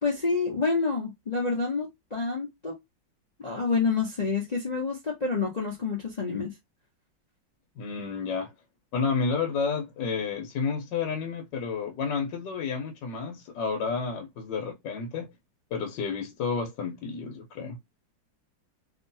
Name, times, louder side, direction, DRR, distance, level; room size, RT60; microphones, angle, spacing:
voice 1, 0.0-2.8 3.4-6.5, left 4 dB, 55° left, 0.4 m, -28 dB
voice 2, 7.8-8.5 8.9-15.3 15.7-17.8, left 5 dB, 75° left, 1.3 m, -31 dB
2.9 x 2.7 x 2.6 m
omnidirectional pair, 2.1 m